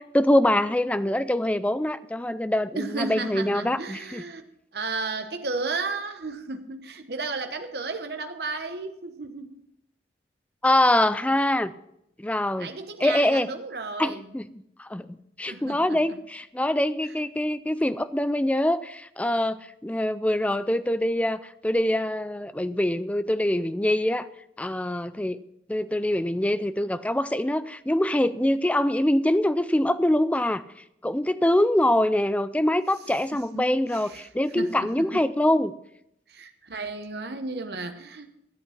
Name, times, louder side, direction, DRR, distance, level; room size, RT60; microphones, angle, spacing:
voice 1, 0.1-4.2 10.6-11.7 12.2-12.7 13.0-13.5 14.0-14.5 14.8-15.1 15.4-24.3 24.6-25.4 25.7-30.6 31.0-35.7, left 1 dB, 10° left, 14 dB, 0.4 m, -24 dB
voice 2, 2.7-4.4 4.7-9.6 12.6-14.3 15.5-16.2 17.0-17.1 33.3-34.3 34.5-35.2 36.3-38.3, right 3 dB, 65° right, 6 dB, 1.1 m, -34 dB
13.5 x 8.4 x 5.8 m, 0.78 s
head